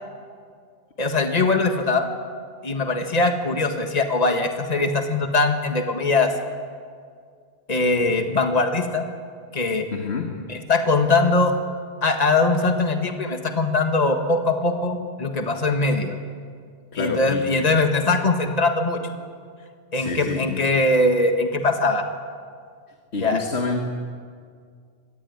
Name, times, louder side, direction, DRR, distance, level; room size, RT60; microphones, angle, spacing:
voice 1, 1.0-2.1 2.6-6.3 7.7-9.1 9.5-9.9 10.5-11.5 12.0-16.2 17.0-19.0 19.9-22.1 23.2-23.4, left 3 dB, 35° left, 5 dB, 1.9 m, -21 dB
voice 2, 9.9-10.4 16.9-17.7 19.9-20.7 23.1-23.9, left 4 dB, 75° left, 2 dB, 2.0 m, -28 dB
25.5 x 19.5 x 9.7 m, 2.1 s
omnidirectional pair, 1.1 m